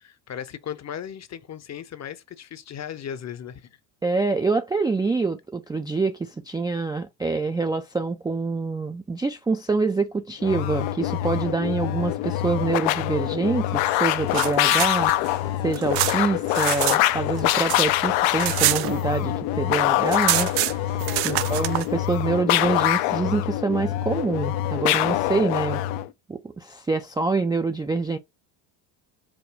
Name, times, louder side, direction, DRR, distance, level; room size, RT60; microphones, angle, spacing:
voice 1, 0.0-3.8 21.2-21.6, left 9 dB, 35° left, 0.8 m, -37 dB
voice 2, 4.0-15.1 15.6-20.5 21.2-25.8 26.3-28.2, right 3 dB, 10° right, 0.3 m, -26 dB
sound 1, 10.4-26.1, left 14 dB, 70° left, 0.6 m, -24 dB
sound 2, 14.1-17.0 17.3-19.5 19.7-19.8 20.0-21.9, right 15 dB, 85° right, 0.7 m, -26 dB
5.0 x 2.2 x 4.6 m
supercardioid pair, 80°, 48 cm